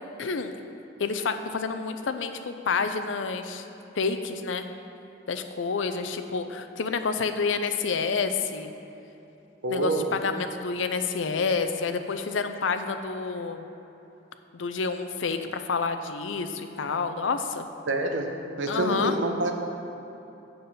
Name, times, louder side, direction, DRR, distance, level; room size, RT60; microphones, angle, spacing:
voice 1, 0.2-0.5 1.0-3.6 4.0-4.7 5.3-8.7 9.7-13.7 14.5-17.7 18.7-19.1, left 5 dB, 80° left, 8 dB, 0.6 m, -29 dB
voice 2, 9.6-10.1 17.9-19.5, right 2 dB, 80° right, 3 dB, 0.9 m, -27 dB
7.8 x 7.0 x 5.6 m, 3.0 s
head